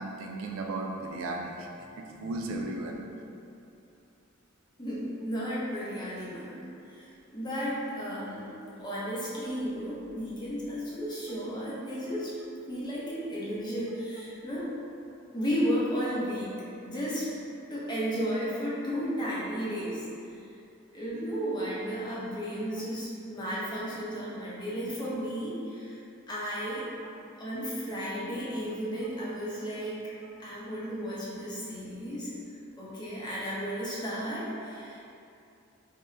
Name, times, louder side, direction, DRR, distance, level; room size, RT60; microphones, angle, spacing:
voice 1, 0.0-2.9, right 2 dB, 80° right, 1 dB, 0.4 m, -35 dB
voice 2, 2.1-2.5 2.9-3.0 4.8-12.3 12.7-14.7 15.3-16.5 16.8-17.3 17.7-20.1 20.9-26.0 26.3-26.9 27.4-30.0 30.4-32.3 32.8-35.0, equal, 20° left, -8 dB, 0.7 m, -34 dB
3.9 x 2.2 x 3.2 m, 2.7 s
head